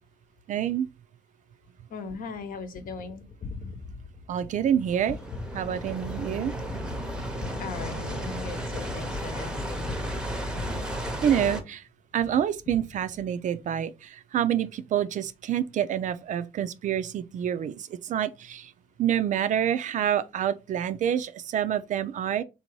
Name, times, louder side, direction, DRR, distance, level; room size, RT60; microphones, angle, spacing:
voice 1, 0.5-0.9 4.3-5.2 5.5-6.5 11.2-11.8 12.1-18.7 19.0-22.4, right 9 dB, 50° right, 0.4 m, -27 dB
voice 2, 1.9-3.3 7.6-10.0, left 5 dB, 55° left, 0.9 m, -38 dB
Gunshot gunfire, 2.1-11.8 12.2-13.6, left 4 dB, 30° left, 0.5 m, -43 dB
sound 1, 4.8-11.6, equal, 5° right, 0.7 m, -34 dB
3.6 x 2.7 x 4.5 m
cardioid pair, 110°, 17 cm